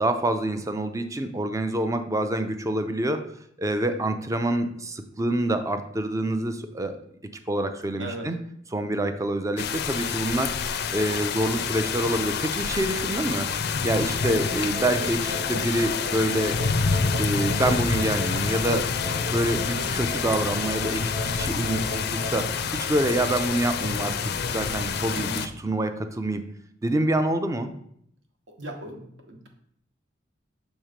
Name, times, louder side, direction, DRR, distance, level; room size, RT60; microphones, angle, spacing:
voice 1, 0.0-3.2 3.6-7.0 7.5-8.4 8.7-10.5 10.9-13.5 13.8-16.6 17.2-18.9 19.3-26.4 26.8-27.7, right 1 dB, 15° right, 8 dB, 0.4 m, -26 dB
voice 2, 8.0-8.3 25.1-25.4 28.6-29.5, right 1 dB, 70° right, 2 dB, 1.1 m, -37 dB
sound 1, 9.6-25.5, left 5 dB, 55° left, 0.4 m, -28 dB
sound 2, 14.2-22.5, equal, 50° right, 1.2 m, -37 dB
6.3 x 3.1 x 5.0 m, 0.69 s
head